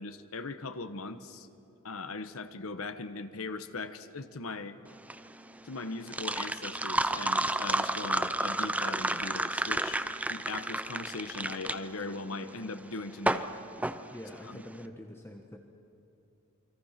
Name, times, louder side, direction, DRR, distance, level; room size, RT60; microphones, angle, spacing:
voice 1, 0.0-1.5 1.8-4.8 5.6-10.0 10.3-13.5 14.4-14.6, left 3 dB, 75° left, 10 dB, 1.3 m, -39 dB
sound 1, 4.9-14.7, right 1 dB, 5° right, 0.6 m, -32 dB
voice 2, 14.1-15.6, equal, 10° left, 3 dB, 1.2 m, -45 dB
29.0 x 23.5 x 5.9 m, 2.9 s
head